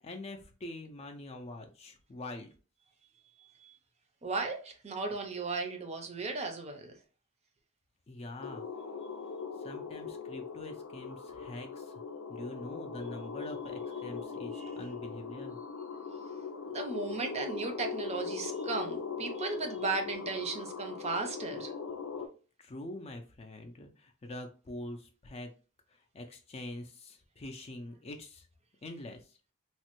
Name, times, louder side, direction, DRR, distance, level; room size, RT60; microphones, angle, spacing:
voice 1, 0.0-2.5 8.1-8.9 9.6-12.0 12.3-15.6 22.6-25.5 25.9-28.5 28.8-29.4, left 1 dB, 30° left, 0.4 m, -45 dB
voice 2, 3.4-3.7 4.2-6.9 14.5-14.7 16.7-21.7, right 3 dB, 30° right, 0.5 m, -36 dB
sound 1, 8.4-22.3, left 5 dB, 80° left, 0.5 m, -40 dB
3.1 x 2.1 x 2.9 m
head